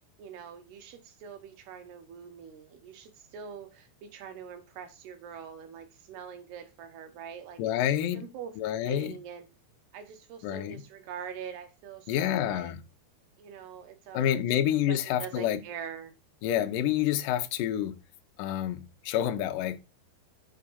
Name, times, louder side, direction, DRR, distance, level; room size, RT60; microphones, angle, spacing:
voice 1, 0.2-7.6 8.1-8.6 8.8-9.5 9.9-12.8 13.4-14.3 14.9-16.1, right 8 dB, 75° right, 3.1 m, -44 dB
voice 2, 7.6-8.3 8.6-9.2 10.4-10.8 12.1-12.8 14.1-15.6 16.4-18.0 18.4-19.8, left 11 dB, 90° left, 1.9 m, -28 dB
6.6 x 5.0 x 5.5 m
omnidirectional pair, 4.9 m